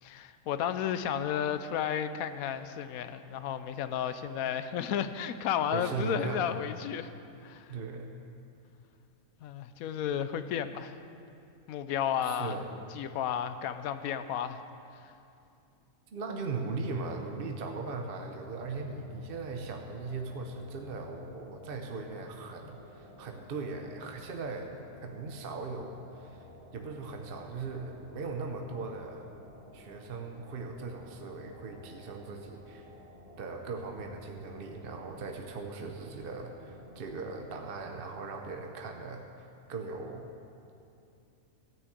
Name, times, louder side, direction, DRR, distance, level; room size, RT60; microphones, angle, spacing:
voice 1, 0.0-7.1 7.4-7.7 9.4-10.9 11.7-12.6 12.9-14.6 15.0-15.1, left 9 dB, 85° left, 11 dB, 1.1 m, -33 dB
voice 2, 5.7-6.5 7.7-8.2 12.2-12.8 16.1-24.7 25.0-26.4 26.7-29.2 29.7-32.9 33.4-39.2 39.7-40.3, right 4 dB, 50° right, 3 dB, 0.9 m, -39 dB
sound 1, 18.0-37.7, left 1 dB, 65° left, 2.5 m, -53 dB
13.5 x 6.2 x 8.3 m, 2.7 s
omnidirectional pair, 1.4 m